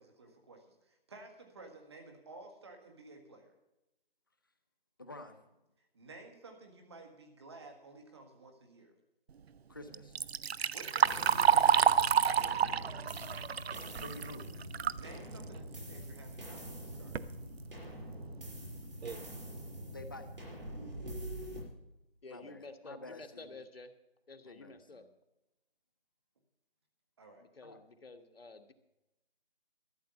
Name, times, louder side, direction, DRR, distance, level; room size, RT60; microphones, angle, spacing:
voice 1, 0.0-3.5 5.9-8.9 10.7-12.8 14.9-17.2 27.2-27.5, right 3 dB, 25° right, 4 dB, 1.6 m, -53 dB
voice 2, 5.0-5.4 9.7-10.2 14.0-14.5 19.9-20.3 22.3-23.5 24.4-25.0 27.6-27.8, left 2 dB, 20° left, 7 dB, 0.7 m, -49 dB
Liquid, 9.9-15.1 15.5-15.6 16.4-16.5 17.0-17.3 17.9-18.0 18.5-18.6 19.0-19.3, right 7 dB, 90° right, 0.6 m, -28 dB
sound 1, 10.8-21.6, right 1 dB, 65° right, 5.4 m, -45 dB
voice 3, 22.2-23.9 24.3-25.0 27.4-28.7, left 3 dB, 70° left, 7 dB, 1.4 m, -51 dB
13.0 x 7.2 x 8.0 m, 0.92 s
figure-of-eight pair, 170°, 30 cm